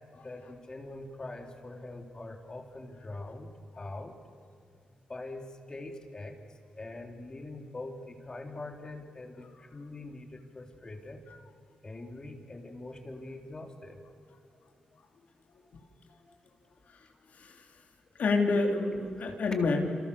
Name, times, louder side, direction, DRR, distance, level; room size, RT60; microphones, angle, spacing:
voice 1, 0.1-4.2 4.9-6.4 6.8-11.2 11.8-14.0 19.2-19.3, left 2 dB, 25° left, 4 dB, 3.4 m, -43 dB
voice 2, 16.9-17.7 18.2-19.8, left 3 dB, 70° left, 2 dB, 3.4 m, -30 dB
29.5 x 28.5 x 6.9 m, 2.2 s
cardioid pair, 105°, 3 cm